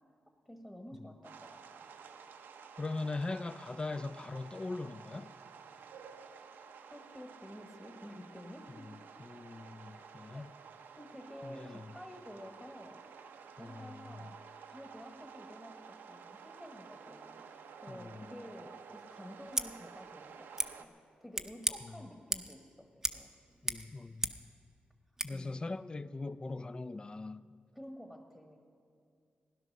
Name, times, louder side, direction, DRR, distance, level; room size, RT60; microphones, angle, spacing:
voice 1, 0.4-1.9 6.9-8.9 10.3-10.5 11.0-13.0 13.6-14.4 14.7-20.9 21.2-23.3 25.3-25.6 27.7-28.6, equal, 10° left, 1.2 m, -50 dB
sound 1, 1.2-20.8, right 6 dB, 90° right, 0.8 m, -52 dB
voice 2, 2.8-5.3 8.7-10.5 11.4-11.9 13.6-14.3 17.9-18.4 21.8-22.0 23.6-24.5 25.2-27.5, left 3 dB, 25° left, 0.4 m, -41 dB
Scissors, 19.5-19.7 20.6-20.7 21.3-21.8 22.3-22.6 23.0-23.2 23.5-24.5 25.2-25.3, right 2 dB, 15° right, 0.6 m, -35 dB
16.0 x 11.0 x 6.4 m
cardioid pair, 95°, 3 cm